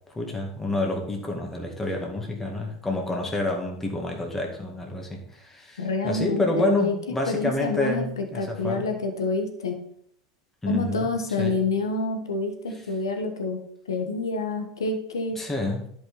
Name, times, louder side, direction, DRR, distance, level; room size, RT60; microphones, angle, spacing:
voice 1, 0.1-8.9 10.6-11.6 15.4-15.9, left 2 dB, 15° left, 0 dB, 2.1 m, -28 dB
voice 2, 5.8-7.0 7.2-9.8 10.7-15.4, left 3 dB, 85° left, 5 dB, 1.3 m, -28 dB
11.0 x 5.4 x 4.2 m, 0.67 s
hypercardioid pair, 90°, 2 cm